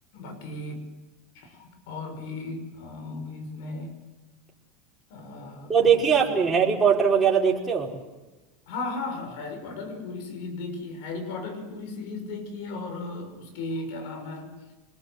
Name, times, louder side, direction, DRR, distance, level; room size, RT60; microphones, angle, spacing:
voice 1, 0.1-0.9 1.3-4.0 5.1-6.5 8.7-14.6, left 3 dB, 70° left, 7 dB, 5.9 m, -36 dB
voice 2, 5.7-7.9, right 7 dB, 15° right, -2 dB, 5.0 m, -20 dB
26.0 x 21.0 x 8.0 m, 1.1 s
supercardioid pair, 120°, 0 cm